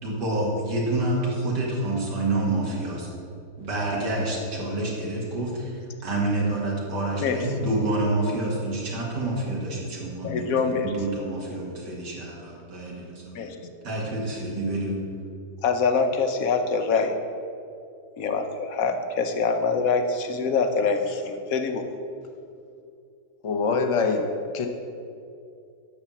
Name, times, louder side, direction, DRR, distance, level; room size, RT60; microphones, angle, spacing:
voice 1, 0.0-3.1 3.6-13.2 13.8-15.0, right 2 dB, 80° right, -3 dB, 2.8 m, -28 dB
voice 2, 10.2-10.9 13.3-13.6 15.6-17.1 18.2-21.9, left 5 dB, 60° left, 6 dB, 1.2 m, -24 dB
voice 3, 23.4-24.2 24.5-24.7, left 4 dB, 35° left, 4 dB, 0.5 m, -23 dB
12.0 x 4.6 x 7.2 m, 2.5 s
omnidirectional pair, 1.8 m